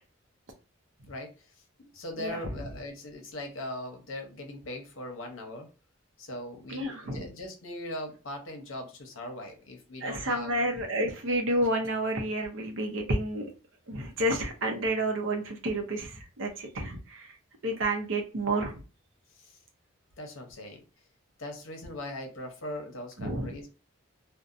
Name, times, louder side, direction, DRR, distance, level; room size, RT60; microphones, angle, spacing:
voice 1, 1.1-5.7 6.2-10.6 19.3-19.6 20.2-20.8 21.4-23.7, left 1 dB, 85° left, 3 dB, 0.8 m, -40 dB
voice 2, 6.7-7.2 10.0-13.5 13.9-17.3 17.6-18.8 23.2-23.5, right 1 dB, 80° right, 4 dB, 0.7 m, -30 dB
2.6 x 2.1 x 2.5 m, 0.33 s
head